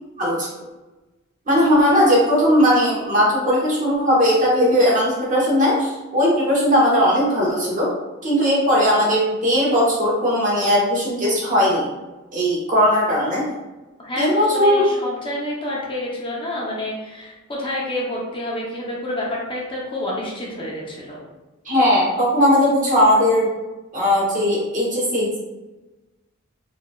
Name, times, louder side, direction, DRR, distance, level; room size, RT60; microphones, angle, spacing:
voice 1, 0.2-0.5 1.5-7.9 8.2-11.9 12.3-13.4 14.2-14.8 21.6-23.5 23.9-25.4, equal, 40° right, -5 dB, 1.1 m, -18 dB
voice 2, 14.0-21.2, left 1 dB, 25° left, -4 dB, 0.7 m, -28 dB
4.0 x 2.6 x 2.3 m, 1.1 s
head